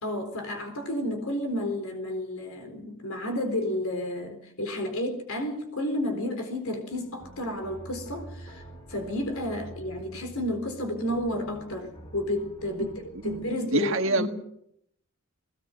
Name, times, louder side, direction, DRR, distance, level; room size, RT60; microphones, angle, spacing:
voice 1, 0.0-8.6 8.9-14.3, left 1 dB, 70° left, 5 dB, 3.9 m, -31 dB
sound 1, 6.9-13.5, right 1 dB, 20° left, 6.1 m, -46 dB
voice 2, 13.2-14.3, right 2 dB, 60° right, 6 dB, 1.6 m, -27 dB
20.5 x 18.5 x 7.9 m, 0.74 s
head